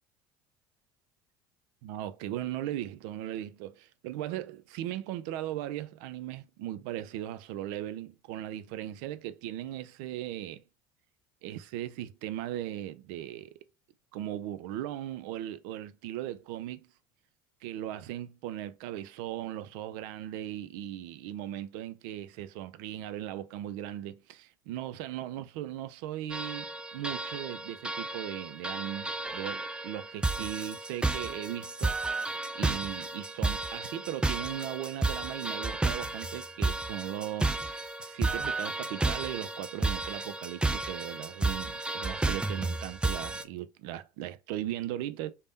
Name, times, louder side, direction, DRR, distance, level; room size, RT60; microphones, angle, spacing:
voice 1, 1.8-10.6 11.4-13.6 14.1-16.8 17.6-31.9 32.5-45.3, right 12 dB, 65° right, 0.4 m, -38 dB
sound 1, 26.3-43.4, right 2 dB, 10° right, 0.4 m, -32 dB
3.4 x 2.1 x 3.9 m
hypercardioid pair, 70°, 11 cm